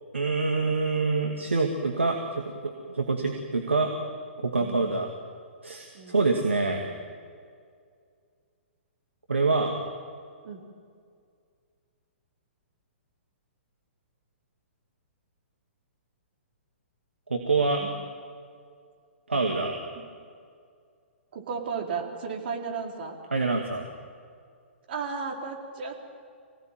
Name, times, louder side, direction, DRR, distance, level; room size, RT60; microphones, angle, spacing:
voice 1, 0.1-3.9 4.4-5.1 5.6-6.9 9.3-9.7 17.3-17.8 19.3-19.8 23.3-23.9, right 3 dB, 85° right, 2 dB, 2.3 m, -26 dB
voice 2, 21.3-23.2 24.9-26.1, right 5 dB, 55° right, 1 dB, 4.3 m, -34 dB
25.5 x 17.5 x 9.3 m, 2.2 s
figure-of-eight pair, 120°, 6 cm